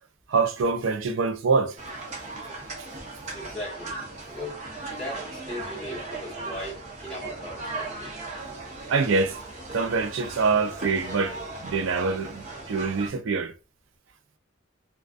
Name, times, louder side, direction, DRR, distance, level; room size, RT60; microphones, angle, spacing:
voice 1, 0.3-1.8 8.9-9.4 9.7-13.5, right 4 dB, 80° right, 0.4 m, -25 dB
sound 1, 1.8-13.1, right 2 dB, 35° right, 0.7 m, -37 dB
voice 2, 3.3-4.0 4.2-4.6 4.9-8.1, left 1 dB, 5° left, 1.0 m, -38 dB
2.4 x 2.3 x 2.3 m
head